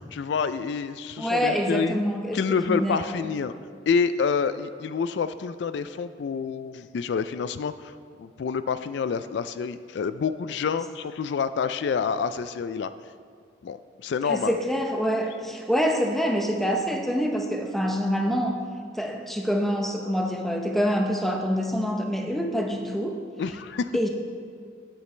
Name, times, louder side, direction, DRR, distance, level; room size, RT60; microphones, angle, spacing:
voice 1, 0.1-2.0 2.3-3.5 3.9-12.9 13.6-14.6 23.4-23.9, left 5 dB, 65° left, 12 dB, 0.3 m, -28 dB
voice 2, 1.2-2.4 2.7-3.2 14.2-18.6 18.9-23.2 23.9-24.1, equal, ahead, 2 dB, 0.8 m, -26 dB
17.0 x 8.1 x 3.2 m, 2.3 s
head